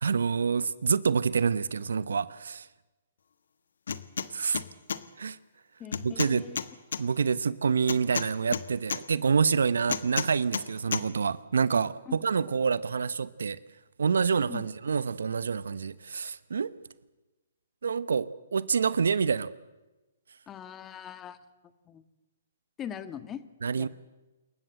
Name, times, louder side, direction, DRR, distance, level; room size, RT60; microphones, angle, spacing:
voice 1, 0.0-2.7 4.3-4.6 5.2-5.4 6.0-6.4 7.0-13.6 14.0-16.7 17.8-19.5 23.6-23.9, right 5 dB, 75° right, 18 dB, 0.9 m, -27 dB
sound 1, 3.9-4.3 4.5-5.0 5.9-7.0 7.9-9.0 9.9-10.7 10.9-11.0, left 6 dB, 75° left, 1.3 m, -31 dB
voice 2, 5.8-6.6 12.0-12.5 14.5-14.7 20.5-21.4 21.9-22.0 22.8-23.4 23.7-23.9, left 9 dB, 20° left, 11 dB, 1.7 m, -41 dB
28.0 x 15.0 x 7.8 m, 1.1 s
hypercardioid pair, 130°, 0 cm